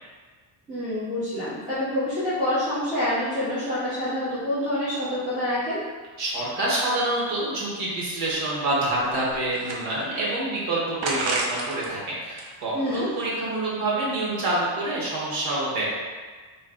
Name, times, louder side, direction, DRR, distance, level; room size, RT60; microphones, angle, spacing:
voice 1, 0.7-5.8 12.7-13.1, left 1 dB, 15° right, -14 dB, 1.0 m, -27 dB
voice 2, 6.2-15.9, right 2 dB, 90° right, -6 dB, 1.4 m, -27 dB
sound 1, 7.9-8.0 8.3-8.4 9.0-10.3 11.0-11.9 12.3-13.5, right 2 dB, 75° right, 0.8 m, -31 dB
3.2 x 3.0 x 3.7 m, 1.4 s
cardioid pair, 165°, 48 cm